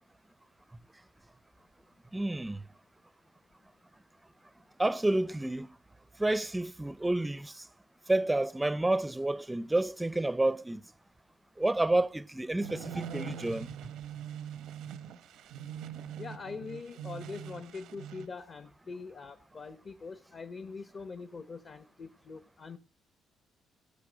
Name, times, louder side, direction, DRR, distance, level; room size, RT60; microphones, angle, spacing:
voice 1, 2.1-2.6 4.8-5.8 6.2-7.7 8.1-10.8 11.6-13.7, right 2 dB, 10° right, 0.5 m, -29 dB
sound 1, 12.6-18.3, right 8 dB, 85° right, 0.8 m, -43 dB
voice 2, 16.2-22.8, left 4 dB, 40° left, 0.8 m, -43 dB
18.0 x 6.6 x 5.1 m
cardioid pair, 100°, 0 cm